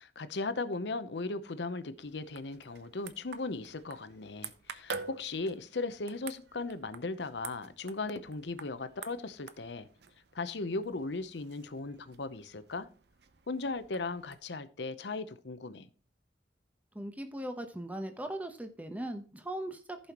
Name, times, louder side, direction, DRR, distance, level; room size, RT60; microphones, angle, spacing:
voice 1, 0.0-9.9 10.3-12.9 13.5-15.9, left 3 dB, 80° left, 0.8 m, -37 dB
sound 1, 1.9-14.4, right 5 dB, 70° right, 0.8 m, -49 dB
voice 2, 16.9-20.0, right 1 dB, 10° right, 0.9 m, -39 dB
15.0 x 5.6 x 3.0 m
head